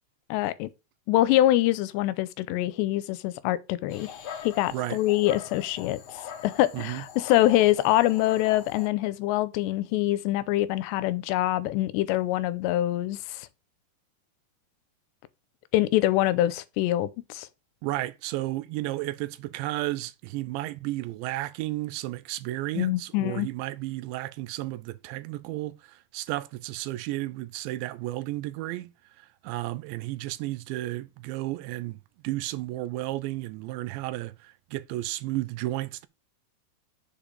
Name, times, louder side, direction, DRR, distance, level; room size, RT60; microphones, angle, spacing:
voice 1, 0.3-0.7 1.1-4.1 4.4-13.5 15.7-17.5 22.8-23.5, left 15 dB, 85° left, 2.8 m, -25 dB
Dog, 3.9-8.9, left 8 dB, 70° left, 1.6 m, -42 dB
voice 2, 17.8-28.9 29.2-36.1, right 17 dB, 85° right, 3.0 m, -33 dB
7.3 x 5.1 x 6.8 m
omnidirectional pair, 5.1 m